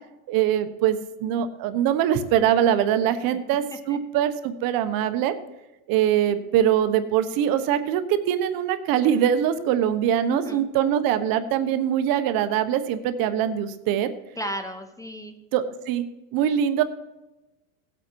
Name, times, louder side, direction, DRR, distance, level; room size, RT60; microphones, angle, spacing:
voice 1, 0.3-5.3 5.9-14.1 15.5-16.8, right 10 dB, 55° right, 10 dB, 1.3 m, -23 dB
voice 2, 10.3-10.7 14.4-15.3, equal, 10° left, 8 dB, 0.8 m, -34 dB
18.5 x 8.2 x 4.7 m, 1.0 s
supercardioid pair, 130°, 42 cm